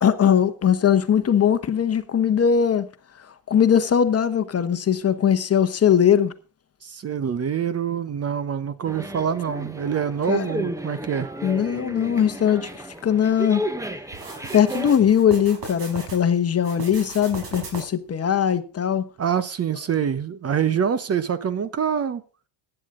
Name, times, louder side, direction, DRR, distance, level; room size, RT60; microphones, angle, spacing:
voice 1, 0.0-2.9 3.5-6.3 10.3-10.5 11.4-13.6 14.5-19.1, left 8 dB, 30° left, 1.1 m, -20 dB
voice 2, 6.8-11.3 19.2-22.2, right 7 dB, 30° right, 0.9 m, -25 dB
sound 1, 8.8-14.9, right 1 dB, 5° right, 1.1 m, -33 dB
sound 2, 14.1-16.2 16.6-18.1, right 4 dB, 60° right, 5.2 m, -37 dB
15.5 x 10.0 x 3.8 m
cardioid pair, 110°, 46 cm